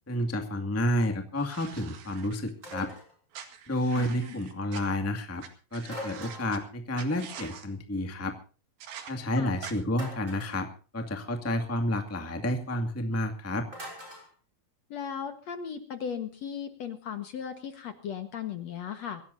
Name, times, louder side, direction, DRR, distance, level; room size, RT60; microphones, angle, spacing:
voice 1, 0.1-2.9 3.7-5.4 5.7-8.3 9.1-10.7 10.9-13.7, left 1 dB, 5° left, 5 dB, 1.3 m, -30 dB
sound 1, 1.4-2.8 3.3-4.8 5.4-5.5 5.7-6.6 6.9-7.7 8.8-9.1 9.6-9.7, right 8 dB, 85° right, 4.0 m, -44 dB
sound 2, 2.6-3.1 5.9-6.7 9.9-10.6 13.7-14.3, equal, 20° right, 6.5 m, -42 dB
voice 2, 3.9-4.4 9.3-9.5 14.9-19.2, left 8 dB, 55° left, 8 dB, 2.2 m, -37 dB
24.5 x 17.0 x 2.7 m, 0.38 s
omnidirectional pair, 4.1 m